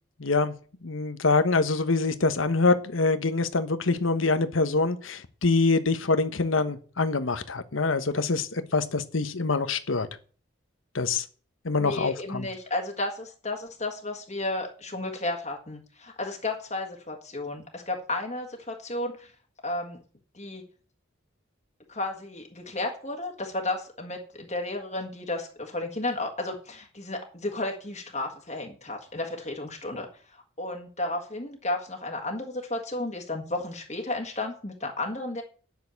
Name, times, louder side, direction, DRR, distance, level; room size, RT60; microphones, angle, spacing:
voice 1, 0.2-0.5 0.8-10.1 10.9-11.2 11.6-12.5, left 3 dB, 85° left, 1.2 m, -25 dB
voice 2, 11.8-19.3 19.6-20.0 20.3-20.6 21.9-35.4, left 2 dB, 35° left, 1.6 m, -33 dB
10.5 x 6.6 x 8.4 m
head